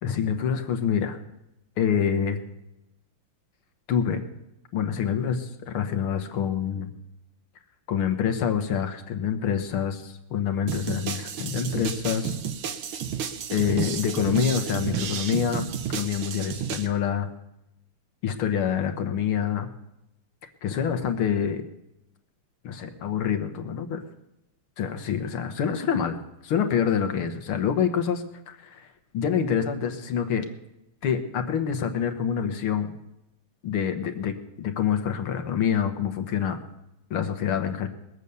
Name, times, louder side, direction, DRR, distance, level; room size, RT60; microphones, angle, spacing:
voice 1, 0.0-1.2 1.8-2.4 3.9-4.3 4.7-6.9 7.9-12.4 13.5-17.3 18.2-19.7 20.6-21.6 22.6-24.0 24.8-26.2 26.4-28.9 29.1-30.5 31.0-32.9 33.6-34.3 34.6-36.6 37.1-37.9, left 8 dB, 80° left, 7 dB, 2.1 m, -26 dB
sound 1, 10.7-16.9, right 8 dB, 75° right, 1.8 m, -31 dB
20.5 x 8.2 x 6.9 m, 0.88 s
omnidirectional pair, 2.4 m